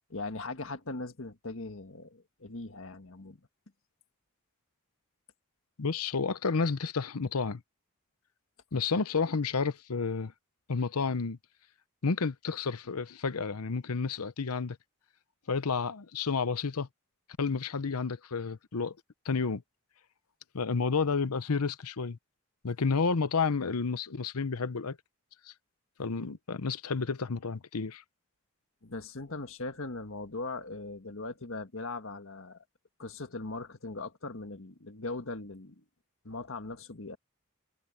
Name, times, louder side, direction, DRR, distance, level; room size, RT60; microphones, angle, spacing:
voice 1, 0.1-3.4 28.8-32.6 33.0-35.8 36.2-37.2, left 3 dB, 65° left, 1.6 m, -40 dB
voice 2, 5.8-7.6 8.7-10.3 10.7-11.4 12.0-14.8 15.5-16.9 17.4-18.9 19.2-19.6 20.5-22.2 22.6-25.0 26.0-28.0, left 4 dB, 85° left, 0.8 m, -30 dB
head